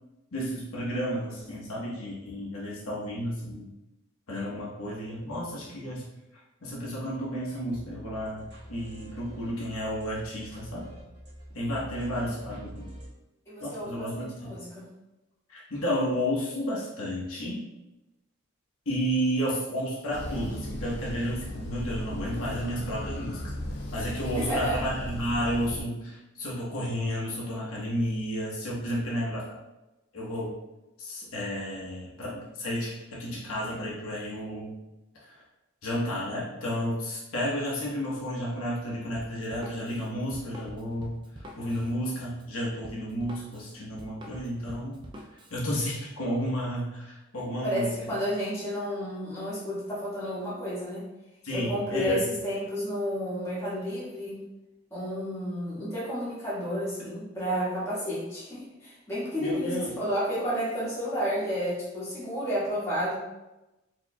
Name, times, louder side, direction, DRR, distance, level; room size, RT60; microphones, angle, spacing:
voice 1, 0.3-3.7 4.3-6.1 6.6-8.4 8.7-10.9 11.5-12.9 13.6-14.5 15.5-17.7 18.9-23.4 23.8-29.5 30.1-30.5 31.0-34.7 35.8-41.2 41.6-44.9 45.5-48.0 51.4-52.4 59.4-59.9, equal, 85° left, -5 dB, 1.0 m, -32 dB
sound 1, 7.7-13.1, equal, 50° right, 1.5 m, -46 dB
voice 2, 11.9-12.3 13.5-14.9 24.3-24.8 47.6-51.1 51.5-54.4 54.9-63.1, equal, 15° left, -10 dB, 1.4 m, -31 dB
sound 2, 20.1-25.8, left 1 dB, 50° left, 0.5 m, -36 dB
Drum kit, 39.2-45.6, equal, 20° right, 0.3 m, -47 dB
4.4 x 3.0 x 2.3 m, 0.99 s
head